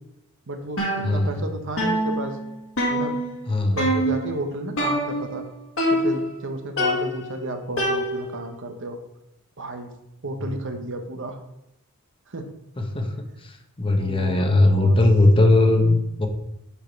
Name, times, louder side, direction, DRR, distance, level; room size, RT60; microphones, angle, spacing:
voice 1, 0.5-2.4 2.9-3.2 3.7-5.5 5.9-9.0 9.6-9.9 10.2-11.4 12.3-12.5 14.0-15.0, right 2 dB, 55° right, 6 dB, 0.9 m, -32 dB
sound 1, 0.8-1.5 1.8-3.5 3.8-4.3 4.8-5.4 5.8-6.4 6.8-8.5, equal, 65° left, 1.9 m, -25 dB
voice 2, 3.5-3.8 12.9-13.1 13.8-16.3, left 2 dB, 25° left, 4 dB, 0.9 m, -18 dB
6.8 x 5.1 x 5.1 m, 0.84 s
head